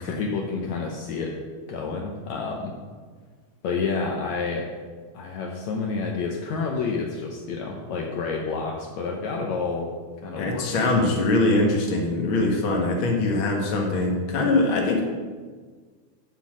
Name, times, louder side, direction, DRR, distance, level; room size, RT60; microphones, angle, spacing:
voice 1, 0.0-1.4 1.7-2.7 3.6-4.7 5.1-9.9 10.2-11.2, left 4 dB, 70° left, 0 dB, 2.1 m, -29 dB
voice 2, 10.4-15.0, left 2 dB, 45° left, 0 dB, 2.1 m, -22 dB
12.0 x 4.5 x 7.4 m, 1.5 s
omnidirectional pair, 3.5 m